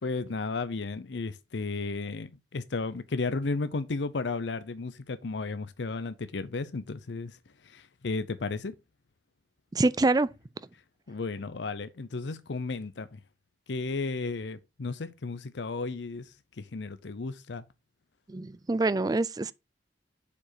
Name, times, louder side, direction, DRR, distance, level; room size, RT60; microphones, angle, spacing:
voice 1, 0.0-7.4 7.6-8.7 11.1-13.2 13.7-17.6, left 3 dB, 85° left, 0.6 m, -34 dB
voice 2, 9.7-10.3 18.3-19.5, right 2 dB, 20° right, 0.4 m, -25 dB
7.1 x 4.8 x 4.5 m
head